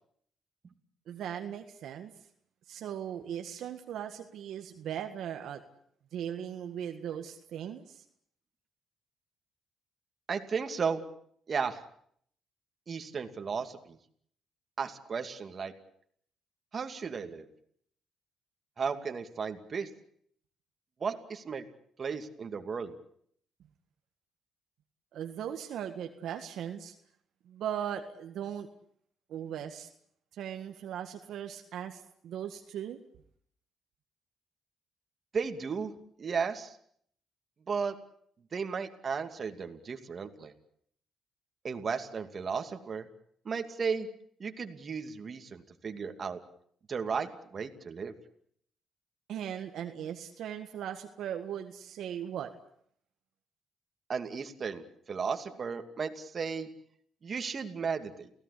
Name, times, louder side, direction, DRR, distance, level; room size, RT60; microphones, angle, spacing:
voice 1, 1.1-2.1 2.7-5.6 6.1-8.0 25.1-26.9 27.5-28.7 29.3-29.9 30.4-33.0 49.3-52.5, right 9 dB, 75° right, 5 dB, 1.8 m, -38 dB
voice 2, 10.3-11.0 11.5-11.8 12.9-14.0 14.8-15.7 16.7-17.5 18.8-19.9 21.0-21.6 22.0-22.9 35.3-35.9 36.2-36.8 37.7-38.0 38.5-40.5 41.6-43.1 43.4-44.1 44.4-46.4 46.9-48.2 54.1-56.7 57.2-58.3, right 5 dB, 45° right, 6 dB, 2.6 m, -34 dB
29.0 x 17.0 x 8.5 m, 0.67 s
cardioid pair, 90°, 0 cm